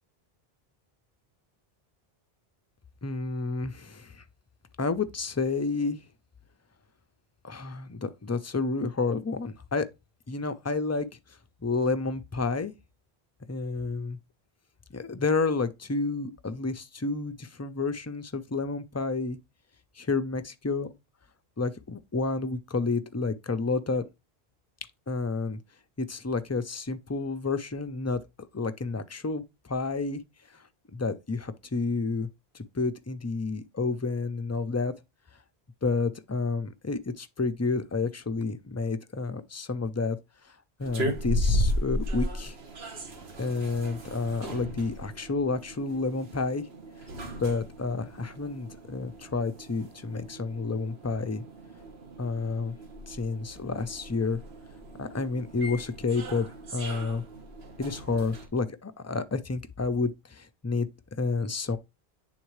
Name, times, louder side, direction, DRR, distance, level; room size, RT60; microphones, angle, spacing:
voice 1, 3.0-4.2 4.8-6.0 7.4-9.9 10.3-11.1 11.6-12.7 13.5-14.2 14.9-19.4 20.0-20.9 21.6-24.1 25.1-25.6 26.0-28.2 28.5-30.2 30.5-30.6 30.9-32.3 32.5-34.9 35.8-40.2 40.5-42.6 43.4-46.6 47.4-51.4 52.2-52.8 53.1-54.4 55.0-57.2 57.8-61.8, left 4 dB, 25° left, 0.3 m, -30 dB
sound 1, 40.8-58.5, equal, 80° right, 1.6 m, -35 dB
9.4 x 3.6 x 3.1 m
omnidirectional pair, 1.0 m